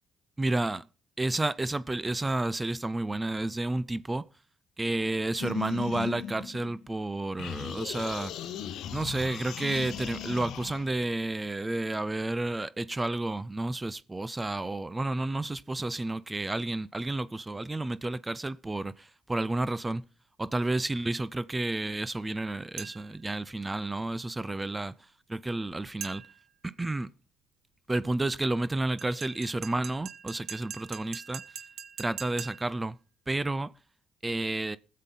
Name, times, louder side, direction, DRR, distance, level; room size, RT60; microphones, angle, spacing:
voice 1, 0.4-0.8 1.2-4.3 4.8-8.3 8.9-20.0 20.4-24.9 25.3-26.2 26.6-27.1 27.9-31.4 32.0-33.0 33.3-33.7 34.2-34.8, right 2 dB, 20° right, 0.5 m, -31 dB
sound 1, 5.4-7.0 7.4-10.9, left 10 dB, 75° left, 0.8 m, -38 dB
sound 2, 22.8-23.2 26.0-26.5 29.0-32.8, right 8 dB, 70° right, 1.0 m, -43 dB
21.0 x 7.5 x 3.9 m
supercardioid pair, 70°, 0 cm